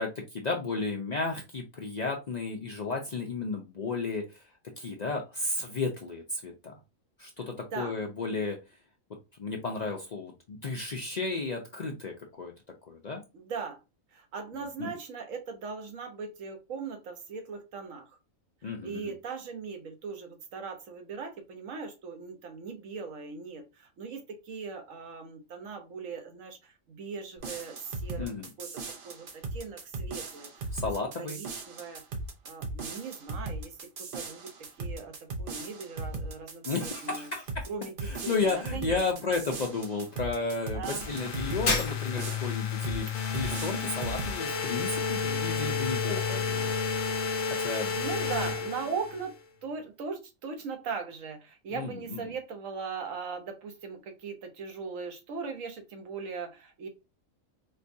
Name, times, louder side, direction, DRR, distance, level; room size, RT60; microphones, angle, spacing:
voice 1, 0.0-4.4 4.8-6.7 7.2-8.6 9.4-12.5 12.9-13.2 14.5-14.9 18.6-19.1 28.2-28.5 30.7-31.4 36.6-37.7 38.0-43.1 43.3-46.8 47.5-47.9 51.7-52.2, left 3 dB, 60° left, 1 dB, 0.4 m, -33 dB
voice 2, 7.6-7.9 13.3-13.8 14.1-18.1 18.8-28.7 29.0-30.7 31.2-32.0 32.4-37.3 37.7-39.0 40.7-41.4 47.5-49.3 49.6-56.9, right 5 dB, 75° right, 5 dB, 1.2 m, -39 dB
sound 1, 27.4-41.7 42.2-43.0 43.3-44.4, right 3 dB, 55° right, 0.6 m, -38 dB
sound 2, 41.0-49.3, left 5 dB, 80° left, 1.1 m, -31 dB
Shatter, 41.7-42.5, left 2 dB, 45° left, 1.1 m, -29 dB
4.3 x 2.2 x 2.6 m, 0.27 s
omnidirectional pair, 1.4 m